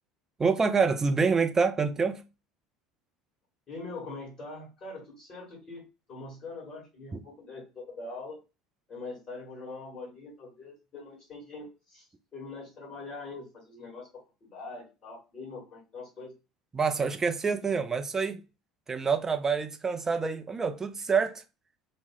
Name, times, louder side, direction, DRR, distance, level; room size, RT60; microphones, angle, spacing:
voice 1, 0.4-2.2 7.1-7.2 16.7-18.4 18.9-21.4, right 5 dB, 20° right, 0.4 m, -27 dB
voice 2, 3.7-8.4 8.9-12.0 12.3-14.1 14.4-16.3, left 3 dB, 30° left, 1.7 m, -43 dB
2.9 x 2.1 x 3.6 m
figure-of-eight pair, 65°, 2 cm